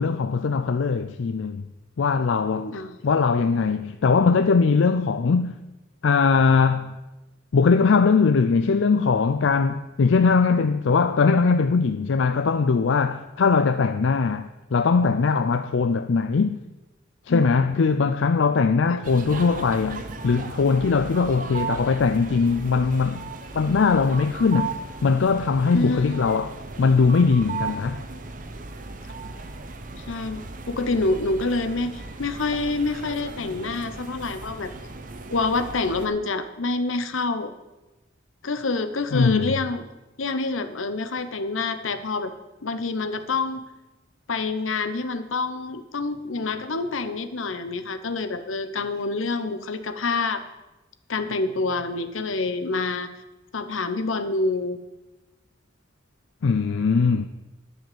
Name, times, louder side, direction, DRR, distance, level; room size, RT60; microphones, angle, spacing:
voice 1, 0.0-1.6 2.0-2.8 3.0-5.6 6.0-7.0 7.5-16.6 17.3-23.2 23.5-24.7 25.0-26.5 26.8-28.0 39.1-39.5 56.4-57.3, left 4 dB, 75° left, 0.4 m, -21 dB
voice 2, 2.5-3.0 17.3-17.5 18.9-19.0 25.7-26.2 30.1-34.7 35.3-37.5 38.4-39.8 40.2-42.3 42.6-43.6 44.3-50.4 51.1-53.1 53.5-54.8, left 3 dB, 90° left, 0.9 m, -27 dB
sound 1, 19.0-36.1, right 4 dB, 40° right, 0.9 m, -36 dB
11.0 x 5.4 x 8.6 m
head